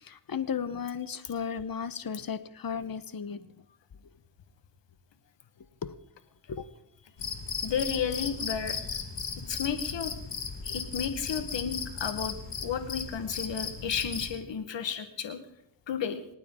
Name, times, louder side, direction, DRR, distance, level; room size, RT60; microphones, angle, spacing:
voice 1, 0.0-3.5 5.8-5.9 6.5-6.7, left 7 dB, 50° left, 14 dB, 1.1 m, -34 dB
Cricket, 7.2-14.4, left 6 dB, 75° left, 2.0 m, -36 dB
voice 2, 7.6-9.0 9.5-10.1 10.6-12.3 12.6-15.4 15.9-16.2, left 7 dB, 90° left, 9 dB, 1.4 m, -32 dB
27.0 x 9.3 x 3.8 m, 0.75 s
cardioid pair, 50°, 43 cm